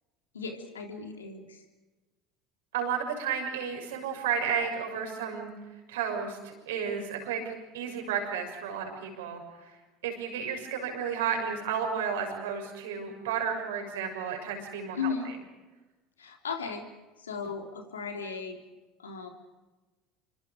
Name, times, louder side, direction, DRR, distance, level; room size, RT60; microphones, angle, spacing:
voice 1, 0.3-1.6 14.9-15.3 16.2-16.8 17.2-18.6 19.0-19.3, left 5 dB, 90° left, 3 dB, 3.4 m, -36 dB
voice 2, 2.7-5.5 5.9-9.7 10.0-15.1, right 7 dB, 75° right, 3 dB, 6.5 m, -32 dB
27.5 x 25.0 x 5.2 m, 1.2 s
hypercardioid pair, 75°, 0 cm